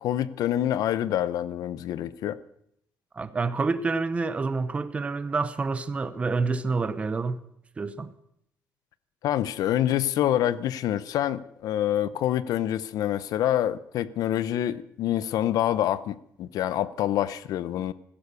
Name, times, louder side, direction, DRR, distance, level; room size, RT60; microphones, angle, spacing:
voice 1, 0.0-2.4 9.2-17.9, left 11 dB, 75° left, 0.7 m, -26 dB
voice 2, 3.1-7.4 7.8-8.1, right 4 dB, 20° right, 0.8 m, -28 dB
16.0 x 13.0 x 6.8 m
cardioid pair, 180°, 6 cm